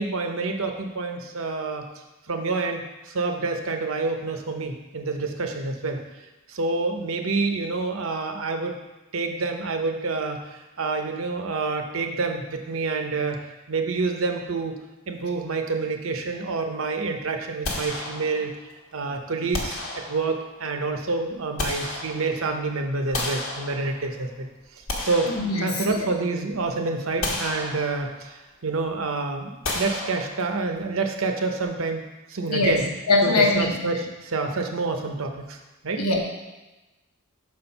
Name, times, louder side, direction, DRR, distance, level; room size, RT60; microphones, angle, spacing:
voice 1, 0.0-1.9 2.3-6.0 6.5-8.8 9.1-13.4 13.7-14.7 15.1-18.5 18.9-24.5 25.0-32.9 33.2-35.6 35.8-36.0, right 3 dB, 65° right, 4 dB, 0.8 m, -28 dB
sound 1, 17.6-18.7 19.5-20.6 21.2-22.6 23.1-24.2 24.7-26.1 26.5-26.7 27.2-28.3 29.6-30.8, left 2 dB, 70° left, 1.3 m, -32 dB
voice 2, 25.3-26.0 32.5-33.8 36.0-36.2, left 3 dB, 85° left, 0 dB, 1.3 m, -22 dB
6.3 x 4.4 x 5.3 m, 1.1 s
head